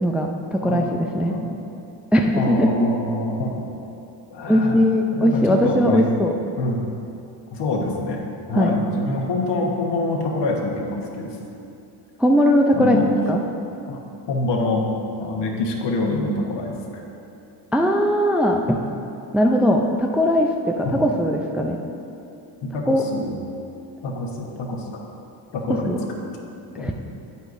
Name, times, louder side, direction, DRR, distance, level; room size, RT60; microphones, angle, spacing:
voice 1, 0.0-1.3 2.1-2.7 4.5-6.3 8.5-8.7 12.2-13.0 13.3-13.4 17.7-18.8 19.3-21.8 22.9-23.0 25.7-26.0 26.8-26.9, equal, 5° right, 1 dB, 0.4 m, -19 dB
voice 2, 2.3-3.7 4.3-6.1 6.6-6.9 7.5-8.2 8.5-11.3 12.7-13.1 13.9-14.0 14.3-14.9 15.2-17.0 20.8-21.0 22.6-23.4 24.0-24.8 25.5-26.0 26.8-26.9, left 2 dB, 60° left, 0 dB, 1.3 m, -25 dB
8.9 x 8.3 x 2.6 m, 2.7 s
cardioid pair, 85°, 47 cm